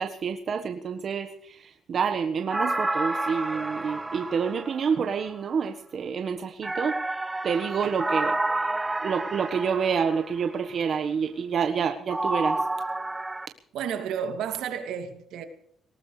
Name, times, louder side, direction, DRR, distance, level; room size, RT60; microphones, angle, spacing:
voice 1, 0.0-1.6 1.9-6.9 7.4-8.3 9.0-12.6, right 6 dB, 55° right, 1.3 m, -28 dB
sound 1, 2.5-5.3 6.6-10.4 12.1-13.5, right 2 dB, 15° right, 0.7 m, -30 dB
voice 2, 13.7-15.4, right 8 dB, 85° right, 2.5 m, -31 dB
19.5 x 19.0 x 3.3 m
cardioid pair, 90°, 0 cm